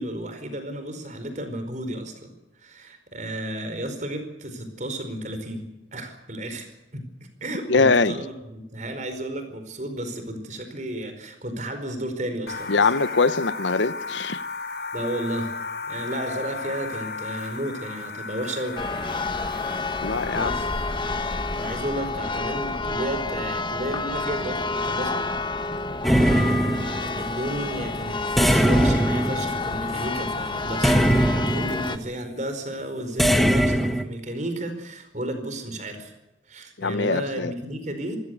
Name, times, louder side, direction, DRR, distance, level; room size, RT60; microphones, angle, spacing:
voice 1, 0.0-2.3 2.6-7.1 7.4-12.9 14.9-15.6 15.9-18.8 20.3-20.7 21.5-25.2 25.8-36.1 36.5-38.2, right 1 dB, 40° right, 4.7 m, -33 dB
voice 2, 7.7-8.2 12.7-14.4 20.0-20.5 36.8-37.5, left 4 dB, 80° left, 0.9 m, -22 dB
sound 1, 12.5-22.2, left 4 dB, 55° left, 5.8 m, -35 dB
Church bell, 18.8-32.0, left 3 dB, 25° left, 1.3 m, -29 dB
sound 2, 26.0-27.3 28.4-30.0 30.8-32.0 33.2-34.0, equal, ahead, 1.3 m, -21 dB
26.0 x 16.0 x 8.1 m
head